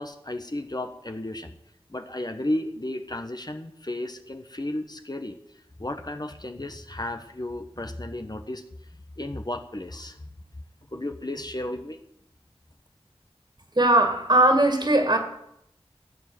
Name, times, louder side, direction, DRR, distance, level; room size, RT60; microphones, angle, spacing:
voice 1, 0.0-1.6 1.9-5.4 5.8-8.6 9.2-10.3 10.9-12.0, left 1 dB, 40° left, 7 dB, 1.3 m, -33 dB
voice 2, 13.8-15.2, right 1 dB, 45° right, 4 dB, 2.5 m, -19 dB
14.5 x 9.2 x 7.8 m, 0.78 s
wide cardioid pair, 50°, 11 cm